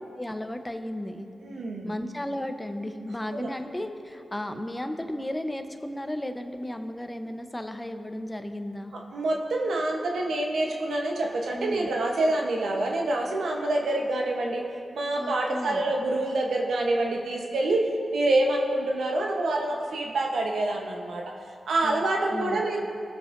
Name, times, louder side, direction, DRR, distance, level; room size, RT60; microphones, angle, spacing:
voice 1, 0.2-1.3 1.8-8.9 11.5-11.9 15.2-15.8 21.8-22.0 22.3-22.6, left 1 dB, 15° left, 7 dB, 0.8 m, -34 dB
voice 2, 1.4-1.9 3.3-3.5 8.9-14.6 14.9-21.3 21.7-22.8, right 2 dB, 80° right, 0 dB, 1.0 m, -26 dB
19.5 x 7.3 x 2.6 m, 2.6 s
cardioid pair, 50°, 0 cm